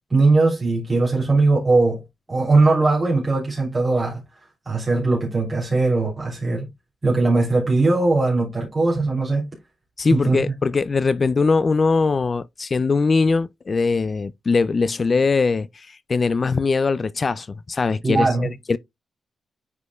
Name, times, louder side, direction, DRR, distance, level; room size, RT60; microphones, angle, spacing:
voice 1, 0.1-2.0 2.3-4.2 4.6-6.7 7.0-9.4 10.1-10.4 18.0-18.5, right 3 dB, 30° right, 3.2 m, -19 dB
voice 2, 10.0-18.8, left 4 dB, 40° left, 0.4 m, -21 dB
9.5 x 5.0 x 2.3 m
cardioid pair, 95°, 0 cm